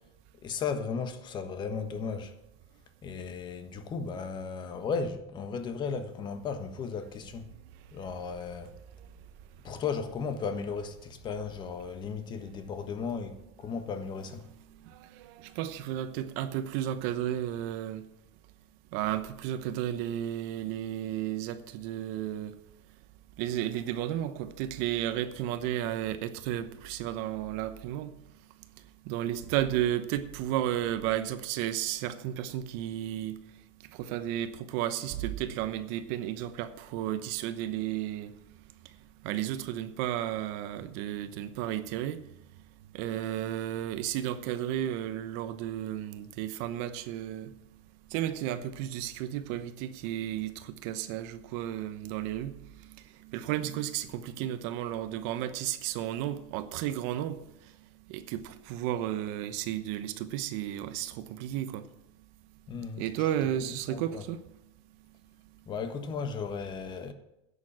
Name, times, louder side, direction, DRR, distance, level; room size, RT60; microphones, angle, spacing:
voice 1, 0.4-2.3 3.0-7.5 7.9-8.7 9.6-14.4 62.7-63.1 63.6-64.2 65.7-67.1, left 5 dB, 30° left, 1.3 m, -35 dB
voice 2, 14.8-18.1 18.9-22.5 23.4-28.1 29.0-33.4 33.9-38.3 39.2-42.2 42.9-47.5 48.1-52.6 52.9-57.4 58.1-61.9 63.0-64.4, right 12 dB, 60° right, 0.9 m, -33 dB
11.0 x 7.1 x 8.7 m
supercardioid pair, 135°, 15 cm